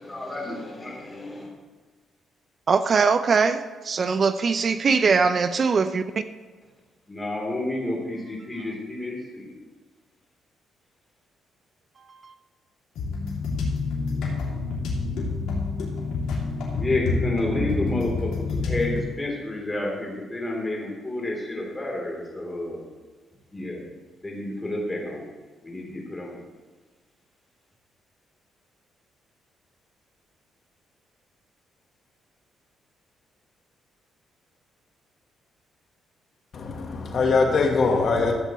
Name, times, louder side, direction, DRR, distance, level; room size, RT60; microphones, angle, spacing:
voice 1, 0.0-1.5 7.1-9.5 16.8-22.8 23.5-23.8 24.2-25.2 25.6-26.3, left 1 dB, 20° left, -2 dB, 3.3 m, -30 dB
voice 2, 2.7-6.0, right 5 dB, 45° right, 11 dB, 0.5 m, -21 dB
sound 1, 12.9-19.0, left 4 dB, 80° left, 2.6 m, -28 dB
voice 3, 36.5-38.3, left 4 dB, 55° left, 2 dB, 1.3 m, -22 dB
14.5 x 8.0 x 3.1 m, 1.4 s
cardioid pair, 90°, 0 cm